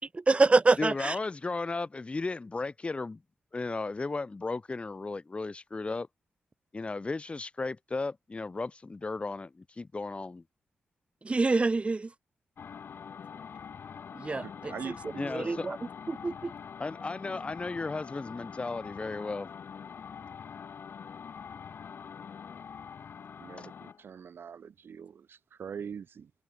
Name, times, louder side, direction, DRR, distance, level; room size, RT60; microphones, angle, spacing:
voice 1, 0.3-1.1 11.2-12.1 14.2-14.4 15.3-15.8 16.1-16.5, right 3 dB, 30° right, 1.0 m, -25 dB
voice 2, 0.8-3.2 3.5-6.1 6.7-10.4 15.2-15.7 16.8-19.5 23.6-23.7, left 3 dB, 30° left, 1.0 m, -35 dB
sound 1, 12.6-24.0, left 7 dB, 65° left, 4.4 m, -44 dB
voice 3, 14.4-15.7 23.4-26.3, right 7 dB, 70° right, 3.2 m, -43 dB
cardioid pair, 70°, 4 cm